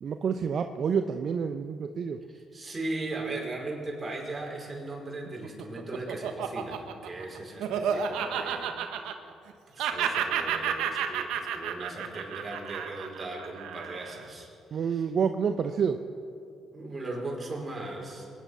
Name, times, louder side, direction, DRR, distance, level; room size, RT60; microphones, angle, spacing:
voice 1, 0.0-2.2 14.7-16.0, right 6 dB, 60° right, 7 dB, 0.7 m, -28 dB
voice 2, 2.3-8.7 9.7-15.1 16.7-18.4, right 2 dB, 30° right, -1 dB, 4.9 m, -38 dB
Laughter, 5.3-9.5 9.8-14.2, right 8 dB, 75° right, 1.0 m, -31 dB
22.5 x 10.5 x 5.5 m, 2.5 s
hypercardioid pair, 50°, 0 cm